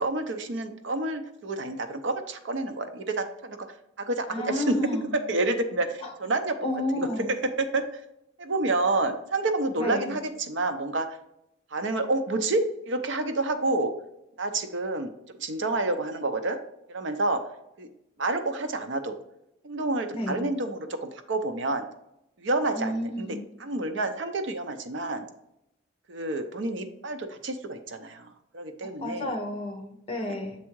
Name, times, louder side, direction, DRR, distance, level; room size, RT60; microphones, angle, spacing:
voice 1, 0.0-4.8 5.1-6.6 6.9-8.0 8.4-11.2 11.7-13.9 14.4-15.1 15.4-16.6 16.9-17.4 17.8-17.9 18.2-19.2 19.6-21.8 22.4-25.3 26.1-29.4 30.2-30.4, right 2 dB, 65° right, 8 dB, 0.6 m, -29 dB
voice 2, 4.3-5.1 6.0-6.1 6.6-7.3 9.8-10.1 20.1-20.4 22.7-23.4 29.0-30.6, left 1 dB, 30° left, 3 dB, 1.0 m, -31 dB
7.4 x 3.6 x 4.6 m, 0.83 s
head